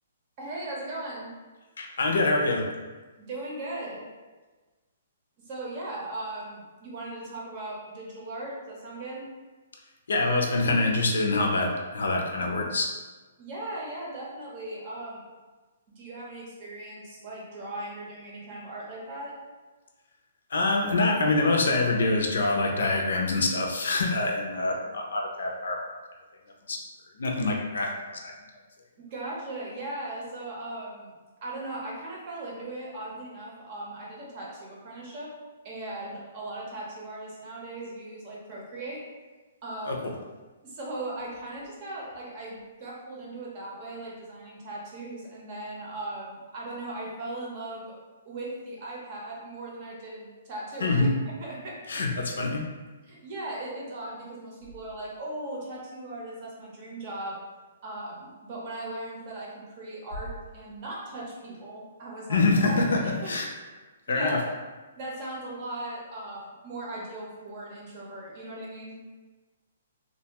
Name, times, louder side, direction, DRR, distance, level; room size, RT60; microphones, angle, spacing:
voice 1, 0.4-1.3 3.2-4.0 5.5-9.3 13.4-15.2 16.0-19.3 29.0-31.2 31.4-35.3 35.6-39.0 39.6-40.1 40.6-48.0 48.2-51.1 51.4-52.1 53.1-57.4 57.8-63.3 64.1-64.5 65.0-69.0, right 2 dB, 30° right, -4 dB, 0.6 m, -38 dB
voice 2, 1.8-2.7 10.1-12.9 20.5-25.8 26.7-26.8 27.2-27.9 28.2-28.3 39.8-40.1 50.8-51.1 51.9-52.6 62.3-63.0 63.3-63.5 64.1-64.4, left 2 dB, 85° left, 1 dB, 0.5 m, -25 dB
2.5 x 2.2 x 2.8 m, 1.3 s
hypercardioid pair, 170°, 0 cm